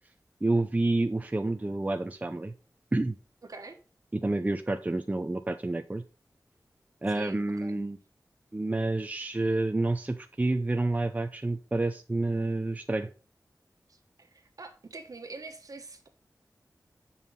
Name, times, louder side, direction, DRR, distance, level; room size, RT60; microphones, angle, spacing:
voice 1, 0.4-2.5 2.9-3.2 4.1-6.0 7.0-8.0 8.5-13.1, right 2 dB, 25° right, 0.5 m, -29 dB
voice 2, 3.4-3.8 7.1-7.8 13.9-16.1, right 3 dB, 65° right, 1.4 m, -45 dB
9.1 x 5.5 x 4.1 m
wide cardioid pair, 85°, 7 cm